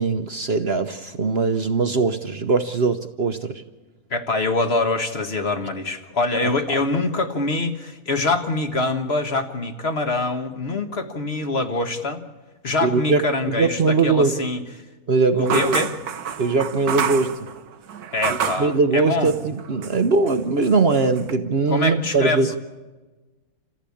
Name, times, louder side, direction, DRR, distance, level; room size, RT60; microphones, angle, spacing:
voice 1, 0.0-3.6 6.4-6.8 12.8-14.3 15.1-15.8 16.4-17.5 18.6-22.5, right 4 dB, 50° right, 8 dB, 1.0 m, -21 dB
voice 2, 4.1-12.2 12.6-14.6 15.4-15.9 18.1-19.3 21.7-22.6, left 3 dB, 45° left, 6 dB, 1.6 m, -24 dB
sound 1, 15.5-18.7 19.2-20.0 20.3-21.3, right 8 dB, 90° right, 1.6 m, -28 dB
27.5 x 15.0 x 8.5 m, 1.2 s
omnidirectional pair, 1.6 m